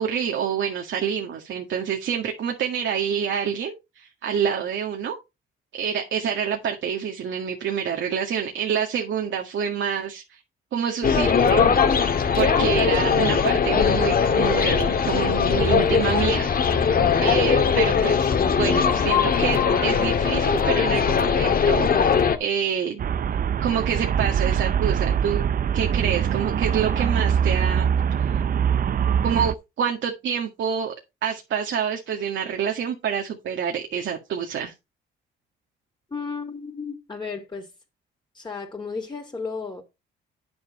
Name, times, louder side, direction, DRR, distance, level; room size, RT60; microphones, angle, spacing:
voice 1, 0.0-5.2 5.7-10.4 10.7-12.1 12.3-16.5 17.2-23.1 23.6-25.5 25.7-27.9 28.2-28.4 29.2-30.9 31.2-34.7, right 7 dB, 70° right, 2.0 m, -27 dB
sound 1, 11.0-22.4, left 6 dB, 45° left, 1.9 m, -20 dB
Traffic noise roadway noise, 23.0-29.5, right 8 dB, 45° right, 0.6 m, -23 dB
voice 2, 36.1-37.7 38.3-39.8, left 4 dB, 20° left, 3.2 m, -33 dB
9.6 x 7.1 x 4.2 m
cardioid pair, 90°, 20 cm